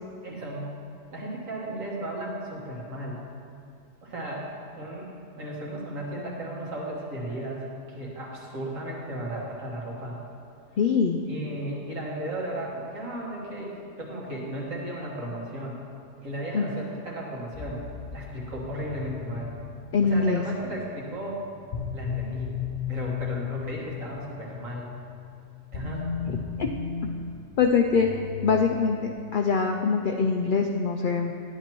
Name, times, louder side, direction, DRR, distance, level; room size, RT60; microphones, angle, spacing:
voice 1, 0.2-0.7 1.1-3.2 4.0-4.5 4.8-5.1 5.4-10.2 11.3-15.8 16.2-17.8 18.1-19.5 20.0-21.4 21.9-22.5 22.9-24.9 25.7-26.1, right 1 dB, 70° right, -4 dB, 2.0 m, -35 dB
voice 2, 10.8-11.2 16.5-16.8 19.9-20.4 26.3-26.7 27.6-28.2 28.4-31.3, left 5 dB, 90° left, 2 dB, 0.4 m, -24 dB
sound 1, 17.5-29.1, left 7 dB, 50° left, 0.7 m, -36 dB
10.5 x 9.9 x 3.0 m, 2.4 s
omnidirectional pair, 1.5 m